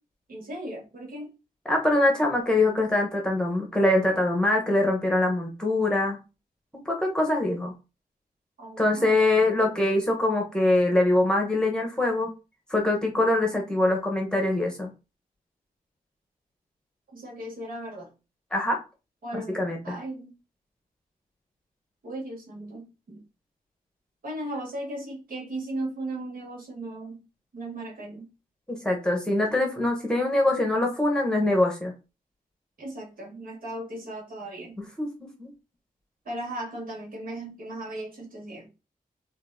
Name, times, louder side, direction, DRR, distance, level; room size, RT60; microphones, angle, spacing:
voice 1, 0.3-1.3 8.6-9.4 17.1-18.1 19.2-20.3 22.0-23.2 24.2-27.2 27.5-28.3 32.8-34.8 36.2-38.7, right 1 dB, 65° right, -2 dB, 2.4 m, -37 dB
voice 2, 1.6-6.2 6.8-7.7 8.8-12.3 12.7-14.9 18.5-18.8 19.5-19.9 28.7-31.9 34.8-35.5, left 2 dB, 5° left, 1 dB, 1.1 m, -23 dB
3.8 x 3.4 x 3.7 m, 0.29 s
wide cardioid pair, 170°, 16 cm